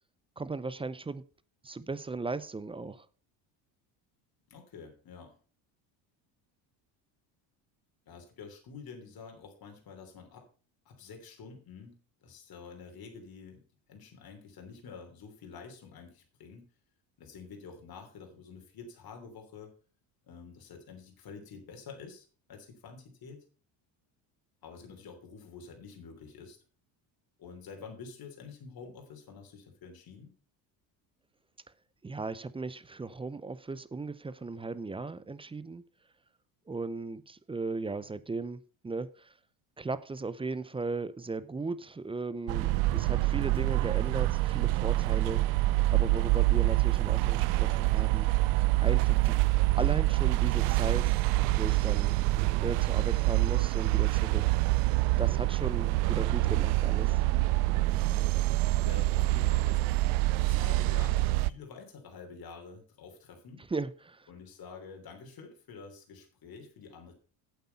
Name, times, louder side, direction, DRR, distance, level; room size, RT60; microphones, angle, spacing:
voice 1, 0.4-1.2 1.6-3.1 32.0-35.8 36.7-39.3 39.8-45.6 45.9-48.3 48.8-51.2 51.6-52.2 52.6-54.6 55.2-57.2 63.7-64.3, right 3 dB, 10° right, 0.5 m, -37 dB
voice 2, 4.5-5.4 8.1-10.5 10.8-13.6 13.9-16.7 17.2-19.7 20.2-23.4 24.6-26.6 27.4-30.3 58.0-58.3 58.8-60.0 60.4-63.6 64.3-67.1, left 5 dB, 45° left, 3.2 m, -48 dB
sound 1, 42.5-61.5, right 19 dB, 85° right, 0.6 m, -26 dB
8.4 x 8.1 x 5.5 m
supercardioid pair, 100°, 48 cm